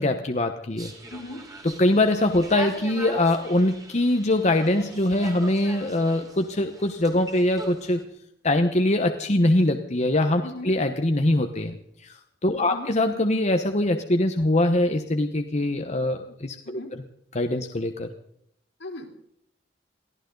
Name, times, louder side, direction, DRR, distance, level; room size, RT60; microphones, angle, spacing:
voice 1, 0.0-0.9 1.6-8.0 8.4-11.8 12.0-12.2 12.4-16.8 17.3-18.1, left 1 dB, 40° left, 5 dB, 1.1 m, -23 dB
sound 1, 0.8-8.0, right 2 dB, 20° right, 2.8 m, -41 dB
voice 2, 1.1-1.4 10.4-10.7 12.5-12.9 16.6-16.9 18.8-19.1, left 2 dB, 80° left, 1 dB, 3.9 m, -38 dB
23.0 x 15.5 x 4.0 m, 0.71 s
head